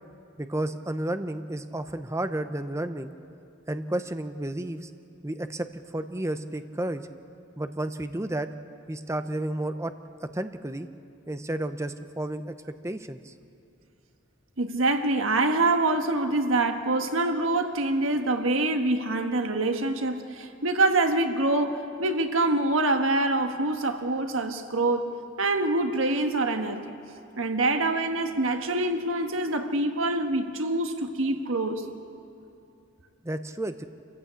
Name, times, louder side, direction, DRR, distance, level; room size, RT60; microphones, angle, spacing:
voice 1, 0.4-3.1 3.7-4.9 5.2-7.1 7.6-8.5 8.9-9.9 10.2-10.9 11.3-12.5 12.8-13.3 33.2-33.9, right 1 dB, 15° right, 0.7 m, -32 dB
voice 2, 14.6-25.1 25.4-26.9 27.4-31.8, right 2 dB, 80° right, 1.5 m, -25 dB
26.5 x 14.5 x 8.5 m
head